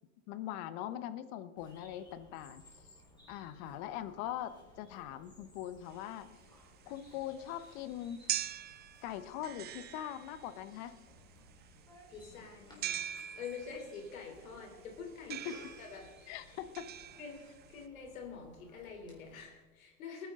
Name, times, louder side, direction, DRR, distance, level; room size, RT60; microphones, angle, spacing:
voice 1, 0.3-2.6 3.3-6.3 6.9-8.2 9.0-10.9 15.3-15.6 16.3-16.9, left 11 dB, 50° left, 13 dB, 1.1 m, -41 dB
Bird vocalization bird call bird song, 1.6-19.4, left 1 dB, 10° left, 4.2 m, -60 dB
sound 1, 5.9-17.8, right 11 dB, 25° right, 0.6 m, -43 dB
voice 2, 12.1-13.0 13.4-16.4 17.2-17.4 17.7-20.3, left 5 dB, 75° left, 3 dB, 3.5 m, -47 dB
20.0 x 10.0 x 3.8 m, 1.2 s
hypercardioid pair, 105°, 42 cm